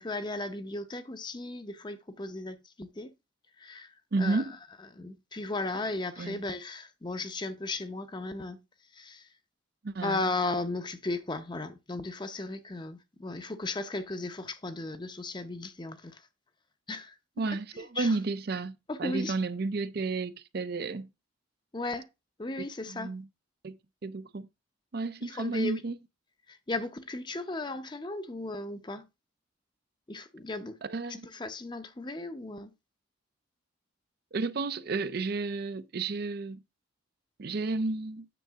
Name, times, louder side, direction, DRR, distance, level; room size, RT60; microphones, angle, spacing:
voice 1, 0.0-3.1 3.6-3.9 4.2-4.4 4.9-8.6 8.9-9.3 10.0-16.2 16.9-17.4 17.8-18.2 18.9-19.3 21.7-22.1 22.4-23.1 25.2-25.8 26.5-29.0 30.1-30.8 31.1-32.7, left 2 dB, 20° left, 0.7 m, -36 dB
voice 2, 4.1-4.6 6.2-6.4 9.8-10.3 17.4-21.1 22.9-23.3 23.6-24.5 24.9-26.0 30.8-31.3 34.3-36.6 37.4-38.3, right 3 dB, 50° right, 0.5 m, -32 dB
9.2 x 6.5 x 3.5 m
head